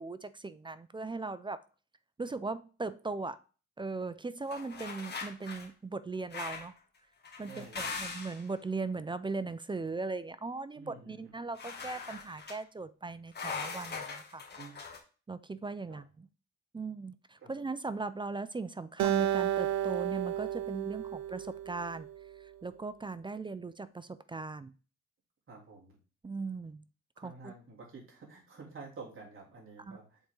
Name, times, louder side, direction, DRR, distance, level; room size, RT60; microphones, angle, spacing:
voice 1, 0.0-1.6 2.2-3.4 3.8-6.7 7.4-14.4 15.3-16.3 16.7-22.1 22.4-24.7 26.2-26.8 27.2-27.5 29.9-30.0, right 3 dB, 15° right, 14 dB, 0.4 m, -39 dB
sound 1, 4.5-5.7 6.3-6.8 7.2-8.5 11.6-12.6 13.3-15.0, left 4 dB, 35° left, 2.0 m, -41 dB
voice 2, 7.5-8.1 10.7-11.3 14.6-14.7 15.9-16.0 17.4-17.5 25.5-26.0 27.1-30.2, right 4 dB, 45° right, -3 dB, 3.3 m, -49 dB
Acoustic guitar, 19.0-22.3, right 12 dB, 70° right, 0.6 m, -32 dB
7.1 x 4.2 x 3.8 m, 0.36 s
cardioid pair, 90°, 30 cm